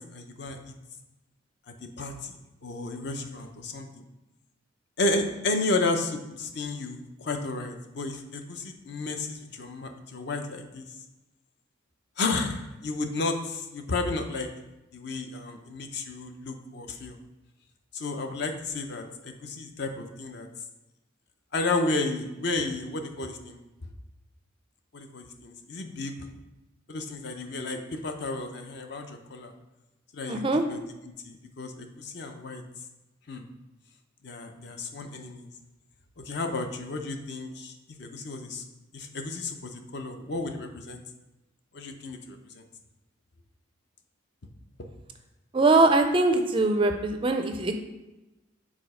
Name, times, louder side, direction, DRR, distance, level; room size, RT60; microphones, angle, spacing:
voice 1, 0.1-0.7 2.0-2.4 2.6-4.0 5.0-10.8 12.2-14.5 14.9-17.2 17.9-20.5 21.5-23.6 24.9-26.3 26.9-29.5 30.1-30.4 30.7-30.8 31.2-32.6 33.3-33.4 34.2-35.5 36.2-37.7 38.0-38.6 38.9-41.0 41.7-42.6, left 3 dB, 50° left, 5 dB, 0.6 m, -32 dB
voice 2, 30.3-30.6 45.5-47.7, right 2 dB, 25° right, 6 dB, 0.4 m, -22 dB
5.0 x 4.1 x 4.9 m, 1.0 s
head